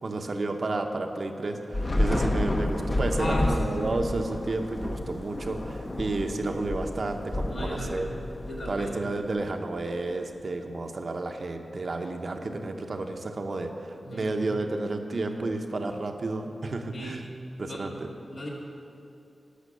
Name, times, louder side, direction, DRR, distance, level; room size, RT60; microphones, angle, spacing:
voice 1, 0.0-8.1 8.7-17.2 17.6-18.1, right 2 dB, 60° right, 4 dB, 0.9 m, -31 dB
Thunder / Rain, 1.7-9.2, left 1 dB, 40° left, 1.0 m, -30 dB
voice 2, 3.1-3.7 7.5-8.1 8.4-9.0 14.0-14.3 16.9-17.2 17.6-17.9 18.3-18.5, equal, 75° left, -5 dB, 2.7 m, -36 dB
11.5 x 6.0 x 6.7 m, 2.7 s
cardioid pair, 55°, 0 cm